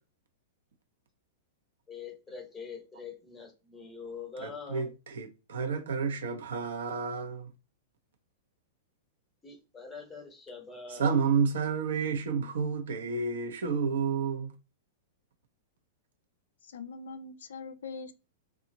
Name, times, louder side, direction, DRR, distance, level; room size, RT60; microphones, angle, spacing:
voice 1, 1.9-4.9 9.4-11.1, left 5 dB, 10° left, 0.7 m, -44 dB
voice 2, 4.4-7.5 10.9-14.5, right 5 dB, 85° right, 0.8 m, -30 dB
voice 3, 16.6-18.1, left 4 dB, 90° left, 0.4 m, -42 dB
2.8 x 2.3 x 2.6 m
supercardioid pair, 160°, 0 cm